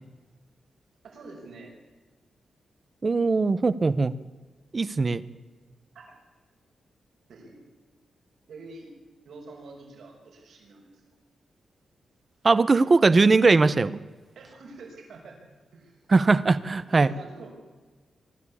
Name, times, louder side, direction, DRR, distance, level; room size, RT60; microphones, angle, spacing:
voice 1, 1.0-1.7 5.9-6.1 7.3-7.6 8.5-8.9 9.2-11.0 14.4-15.4 15.7-16.0 16.8-17.5, right 3 dB, 75° right, 1 dB, 5.9 m, -46 dB
voice 2, 3.0-4.1 4.7-5.2 12.4-13.9 16.1-17.1, right 3 dB, 30° right, 16 dB, 0.8 m, -20 dB
24.0 x 13.5 x 8.6 m, 1.3 s
wide cardioid pair, 150°, 0 cm